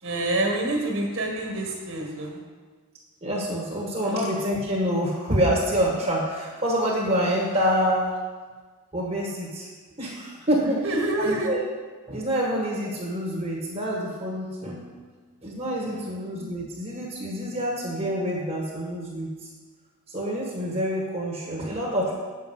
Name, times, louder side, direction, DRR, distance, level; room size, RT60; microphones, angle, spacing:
voice 1, 0.0-2.4 4.0-4.2 10.8-11.5 15.9-16.1, right 2 dB, 60° right, 1 dB, 1.8 m, -27 dB
voice 2, 3.2-8.1 8.9-9.7 10.0-10.8 11.2-11.6 12.1-14.8 15.4-19.3 20.1-22.1, equal, 30° right, -3 dB, 1.4 m, -26 dB
8.0 x 6.5 x 5.4 m, 1.4 s
head